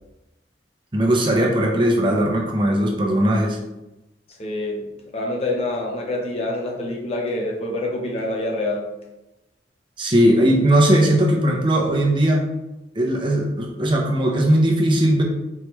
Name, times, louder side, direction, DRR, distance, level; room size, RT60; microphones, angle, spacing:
voice 1, 0.9-3.6 10.0-12.5 12.9-15.2, right 1 dB, 30° right, 0 dB, 0.6 m, -18 dB
voice 2, 4.4-8.9, left 2 dB, 35° left, 0 dB, 0.7 m, -26 dB
4.6 x 3.1 x 3.1 m, 0.97 s
head